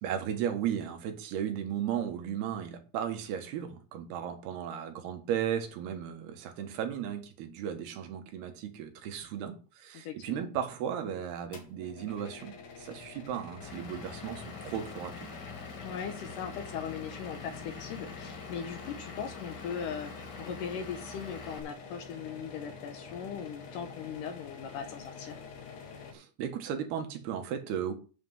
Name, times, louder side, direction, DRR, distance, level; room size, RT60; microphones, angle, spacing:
voice 1, 0.0-15.3 26.1-27.9, right 9 dB, 80° right, 3.4 m, -35 dB
voice 2, 9.9-10.5 15.8-25.4, left 7 dB, 70° left, 2.2 m, -39 dB
sound 1, 11.5-26.1, left 5 dB, 90° left, 4.2 m, -47 dB
Vehicle / Engine, 13.6-21.6, left 4 dB, 45° left, 1.4 m, -45 dB
9.0 x 6.0 x 7.3 m
omnidirectional pair, 4.5 m